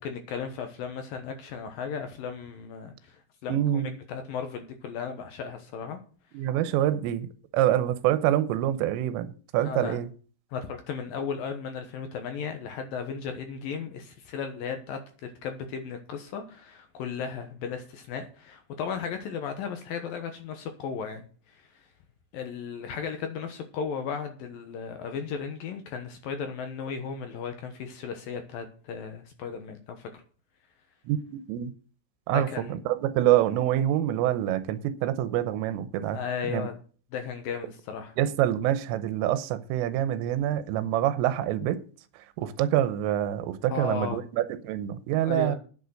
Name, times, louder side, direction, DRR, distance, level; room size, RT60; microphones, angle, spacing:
voice 1, 0.0-6.0 9.6-10.0 10.5-21.7 22.3-30.2 32.3-32.8 36.0-36.7 37.1-38.1 43.7-44.2 45.2-45.6, left 6 dB, 75° left, 2.1 m, -35 dB
voice 2, 3.5-3.9 6.4-7.3 7.5-9.3 9.5-10.1 31.1-31.2 31.5-31.7 32.3-32.5 32.9-36.2 36.5-36.7 38.2-41.8 42.4-45.6, right 12 dB, 85° right, 3.3 m, -26 dB
9.5 x 8.5 x 6.4 m
omnidirectional pair, 5.7 m